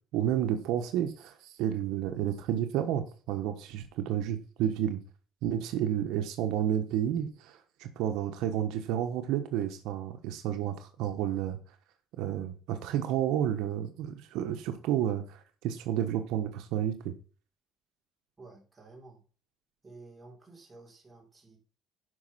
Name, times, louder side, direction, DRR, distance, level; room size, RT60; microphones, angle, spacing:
voice 1, 0.1-5.0 5.4-11.6 12.2-17.1, right 10 dB, 85° right, 7 dB, 1.2 m, -31 dB
voice 2, 18.4-19.2 19.8-21.6, right 3 dB, 15° right, 0 dB, 4.5 m, -52 dB
11.5 x 5.5 x 5.8 m, 0.39 s
cardioid pair, 120°, 0 cm